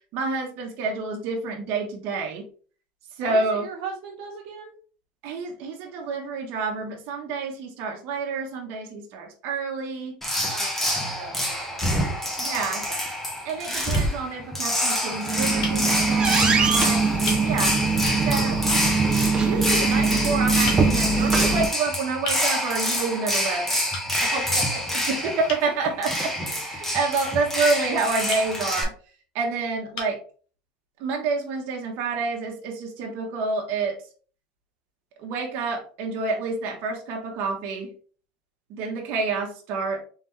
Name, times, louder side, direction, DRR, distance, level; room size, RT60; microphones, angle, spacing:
voice 1, 0.1-2.5 3.2-3.7 5.2-10.1 12.4-12.9 13.4-17.0 17.4-17.8 18.2-18.6 19.4-23.8 25.1-28.9 29.3-30.2 31.0-34.0 35.2-37.9 38.7-40.0, right 4 dB, 55° right, 1 dB, 1.1 m, -28 dB
voice 2, 3.2-4.7 10.4-12.9 24.3-25.0, right 4 dB, 75° right, -4 dB, 1.1 m, -38 dB
sound 1, 10.2-28.8, equal, 5° left, 1.0 m, -27 dB
sound 2, 13.9-14.1 15.6-15.8 16.7-16.8 17.2-17.5 18.9-19.1 20.7-20.9 22.2-22.5 23.9-24.1 25.5-25.7 28.3-28.5 29.3-29.4 29.9-30.2, left 3 dB, 90° left, 1.4 m, -34 dB
sound 3, 15.2-21.7, right 4 dB, 20° right, 0.6 m, -22 dB
3.7 x 3.5 x 3.1 m, 0.41 s
supercardioid pair, 150°, 4 cm